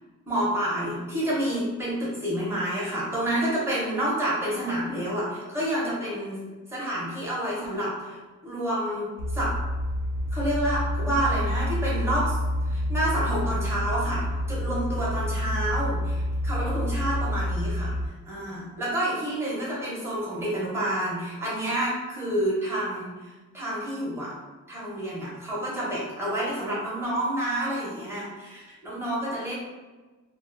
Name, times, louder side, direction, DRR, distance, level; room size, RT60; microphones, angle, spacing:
voice 1, 0.3-6.4 6.7-9.5 10.3-12.4 12.6-17.9 18.3-24.3 24.7-29.5, right 1 dB, 10° right, -7 dB, 0.6 m, -29 dB
sound 1, 9.2-18.1, left 1 dB, 90° left, 0.5 m, -28 dB
2.3 x 2.3 x 2.4 m, 1.3 s
wide cardioid pair, 175°, 31 cm